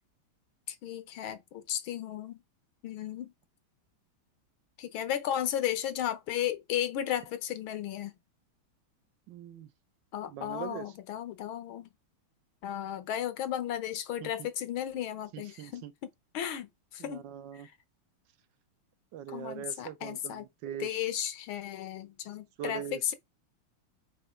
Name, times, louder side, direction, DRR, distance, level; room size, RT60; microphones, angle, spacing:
voice 1, 0.7-2.4 2.8-3.3 4.8-8.1 10.1-11.9 12.6-15.9 16.3-17.2 17.5-17.6 19.3-20.4 20.8-23.1, left 10 dB, 70° left, 1.6 m, -34 dB
voice 2, 9.3-9.7 10.3-10.9 14.2-14.5 15.3-15.9 17.0-17.7 19.1-21.0 22.6-23.1, right 10 dB, 65° right, 1.3 m, -41 dB
5.6 x 3.9 x 4.9 m
omnidirectional pair, 2.4 m